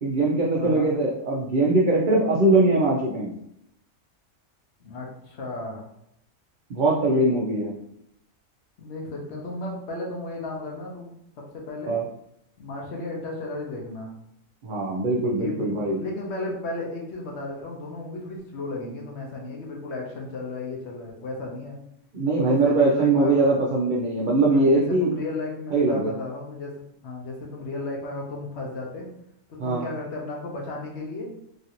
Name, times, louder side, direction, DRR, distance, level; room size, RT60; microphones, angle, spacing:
voice 1, 0.0-3.3 6.7-7.7 11.9-12.0 14.6-16.0 22.1-25.1 25.7-26.1 29.6-29.8, right 2 dB, 85° right, -3 dB, 0.4 m, -21 dB
voice 2, 0.5-0.9 4.8-5.9 8.8-11.1 11.4-12.0 12.6-14.1 15.3-21.8 22.4-23.5 24.5-26.7 27.0-29.1 29.5-31.3, left 2 dB, 60° left, -1 dB, 0.9 m, -34 dB
3.1 x 2.5 x 2.8 m, 0.76 s
omnidirectional pair, 1.4 m